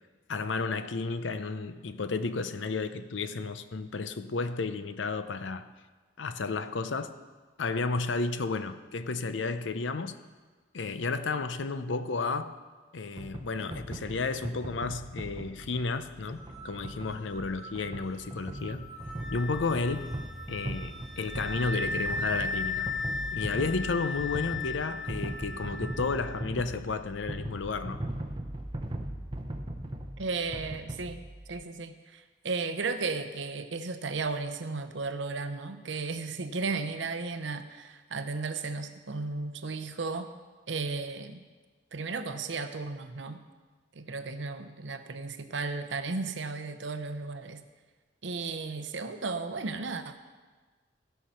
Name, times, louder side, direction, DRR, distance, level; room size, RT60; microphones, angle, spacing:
voice 1, 0.3-5.7 6.2-7.2 7.6-10.1 10.7-12.6 12.9-18.9 19.3-20.1 20.5-22.9 23.3-28.0, left 4 dB, 85° left, 11 dB, 0.6 m, -32 dB
sound 1, 13.2-31.5, right 1 dB, 25° right, 0.7 m, -39 dB
sound 2, 16.1-25.9, right 2 dB, 45° left, 3.8 m, -49 dB
Wind instrument woodwind instrument, 19.0-26.4, left 4 dB, ahead, 0.3 m, -36 dB
voice 2, 30.2-40.3 40.7-41.5 41.9-43.4 43.9-47.6 48.2-50.2, right 4 dB, 80° right, 9 dB, 0.8 m, -35 dB
16.0 x 5.7 x 5.7 m, 1.4 s
head